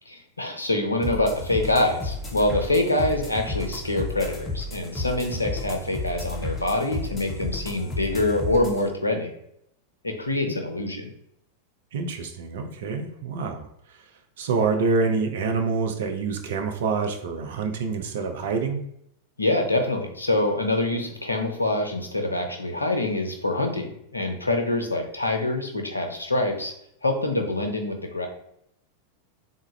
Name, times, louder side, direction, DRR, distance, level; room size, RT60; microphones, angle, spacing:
voice 1, 0.1-9.3 10.0-11.1 19.4-26.7 27.0-28.3, left 2 dB, 80° left, 4 dB, 0.5 m, -25 dB
sound 1, 1.0-8.8, left 2 dB, 15° left, 0.6 m, -32 dB
voice 2, 11.9-13.7 14.4-18.8, right 4 dB, 55° right, 5 dB, 0.5 m, -26 dB
3.4 x 2.1 x 3.1 m, 0.73 s
figure-of-eight pair, 90°, 0 cm